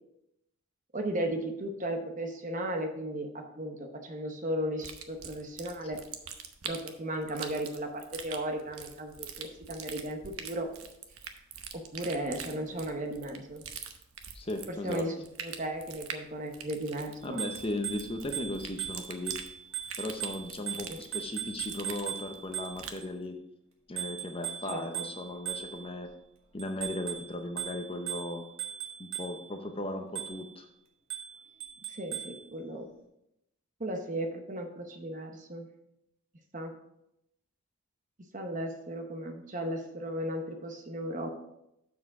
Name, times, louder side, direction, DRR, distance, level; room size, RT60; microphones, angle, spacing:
voice 1, 0.9-6.0 6.6-10.7 11.7-13.6 14.7-15.1 15.4-17.4 20.9-21.0 24.7-25.1 31.9-32.9 33.8-35.7 36.5-36.7 38.3-41.3, right 1 dB, 35° right, 4 dB, 0.9 m, -35 dB
sound 1, 4.8-23.0, right 7 dB, 85° right, 0.9 m, -44 dB
voice 2, 14.3-15.0 17.2-19.4 20.0-23.4 23.9-26.1 26.5-28.5 29.0-30.7, left 1 dB, 25° left, 5 dB, 0.7 m, -37 dB
Bicycle bell, 17.2-23.1 24.0-26.1 26.6-29.6 30.2-30.6 31.1-32.4, right 10 dB, 70° right, 1.5 m, -39 dB
7.3 x 6.2 x 4.7 m, 0.83 s
head